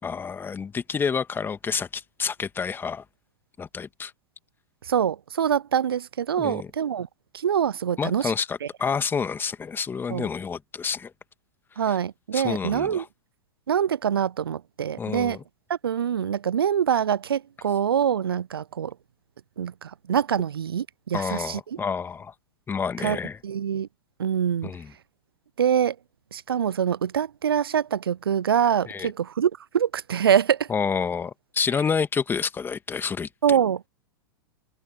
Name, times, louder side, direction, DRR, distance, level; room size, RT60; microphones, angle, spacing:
voice 1, 0.0-3.0 3.6-4.1 6.4-6.7 8.0-11.1 11.7-12.0 12.3-13.1 15.0-15.4 21.1-22.3 22.7-23.4 24.6-24.9 28.9-29.1 30.7-33.3, left 6 dB, 15° left, 1.9 m, -29 dB
voice 2, 4.8-7.1 7.3-8.3 8.6-8.7 10.1-10.3 11.8-13.0 13.7-15.4 15.7-19.0 19.6-21.8 23.0-23.2 23.4-23.9 24.2-24.7 25.6-26.0 26.3-30.7 33.4-33.9, right 8 dB, 75° right, 0.5 m, -25 dB
figure-of-eight pair, 100°, 12 cm